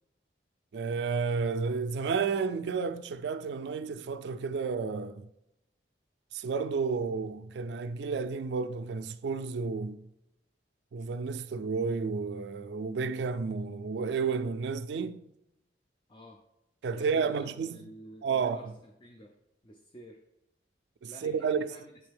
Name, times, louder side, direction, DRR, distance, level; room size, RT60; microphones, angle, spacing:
voice 1, 0.7-5.2 6.3-10.0 10.9-15.3 16.8-17.9 18.2-18.7 21.0-21.7, right 5 dB, 75° right, 0.3 m, -31 dB
voice 2, 16.1-16.4 16.9-19.4 19.6-20.3 21.1-21.9, equal, 25° left, 0.4 m, -50 dB
8.6 x 3.4 x 3.4 m
head